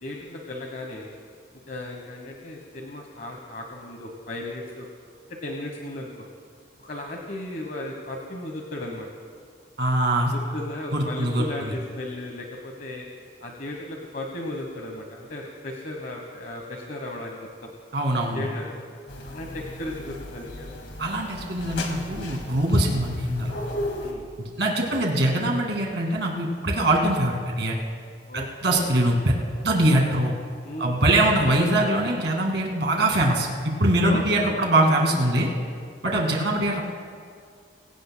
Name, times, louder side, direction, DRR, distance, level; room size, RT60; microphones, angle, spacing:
voice 1, 0.0-1.1 1.7-4.9 5.4-6.1 6.8-9.1 10.3-13.1 13.4-17.5 18.3-18.8 19.3-20.8 24.0-24.3 24.8-25.2 28.2-28.9 30.6-31.0 34.1-34.7, left 1 dB, 50° left, 1 dB, 1.1 m, -36 dB
voice 2, 9.8-10.3 10.9-11.7 17.9-18.4 21.0-23.5 24.4-27.8 28.3-29.3 29.6-30.3 30.8-35.5 36.0-36.8, right 1 dB, 75° right, 0 dB, 2.1 m, -23 dB
sound 1, 19.1-24.1, left 1 dB, 85° left, 1.9 m, -35 dB
24.5 x 17.0 x 2.2 m, 2.1 s
head